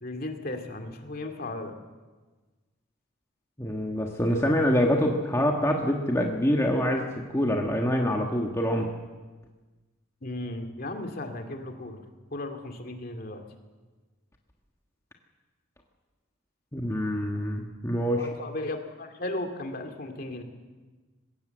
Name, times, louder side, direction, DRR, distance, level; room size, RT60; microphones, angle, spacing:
voice 1, 0.0-1.7 10.2-12.0 12.3-13.4 18.2-20.4, left 2 dB, 45° left, 5 dB, 2.4 m, -35 dB
voice 2, 3.6-8.9 16.7-18.3, equal, 15° left, 0 dB, 1.5 m, -25 dB
20.5 x 17.5 x 7.9 m, 1.3 s
head